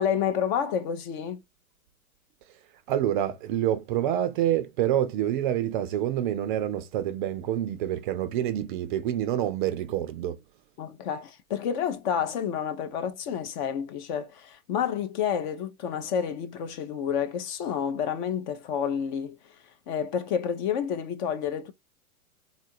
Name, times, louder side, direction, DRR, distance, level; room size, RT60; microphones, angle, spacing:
voice 1, 0.0-1.4 10.8-19.4 19.6-21.7, left 8 dB, 35° left, 0.5 m, -29 dB
voice 2, 2.9-10.4, right 11 dB, 35° right, 0.4 m, -27 dB
3.7 x 2.4 x 2.6 m
hypercardioid pair, 120°, 44 cm